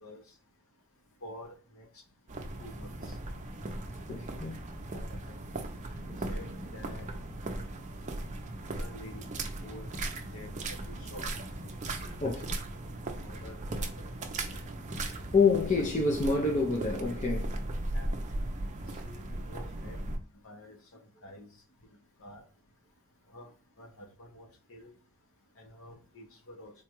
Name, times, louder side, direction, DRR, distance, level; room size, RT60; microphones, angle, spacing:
voice 1, 1.2-1.9 2.6-3.2 4.1-4.2 4.9-5.0 5.3-5.4 6.3-6.5 6.7-7.1 8.7-9.3 9.6-9.9 10.3-10.5 10.9-11.3 12.0-12.3 13.2-14.1 17.9-18.1 18.9-20.0 20.4-20.8 21.2-21.5 22.2-22.4 23.3-23.5 23.8-24.9 25.6-26.7, left 1 dB, 65° left, 0.8 m, -49 dB
sound 1, 2.3-20.2, right 2 dB, 35° right, 0.5 m, -37 dB
voice 2, 4.1-4.6 12.2-12.6 15.3-17.5, left 4 dB, 30° left, 0.5 m, -27 dB
3.8 x 2.3 x 3.0 m
head